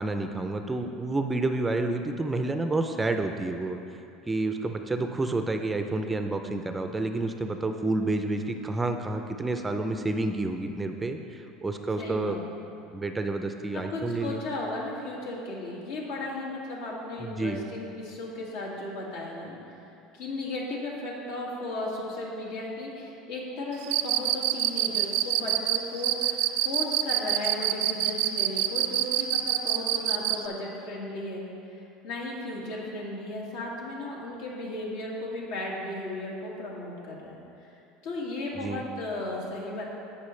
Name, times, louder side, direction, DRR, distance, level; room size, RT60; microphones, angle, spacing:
voice 1, 0.0-3.8 4.3-12.4 12.9-14.4 17.2-17.6 38.6-38.8, right 2 dB, 10° right, 6 dB, 0.4 m, -29 dB
voice 2, 12.0-12.4 13.7-19.5 20.1-37.7 38.0-39.8, left 2 dB, 80° left, -3 dB, 2.1 m, -35 dB
Cricket, 23.8-30.4, right 14 dB, 75° right, 0.4 m, -25 dB
16.5 x 5.6 x 3.2 m, 2.7 s
cardioid pair, 145°, 0 cm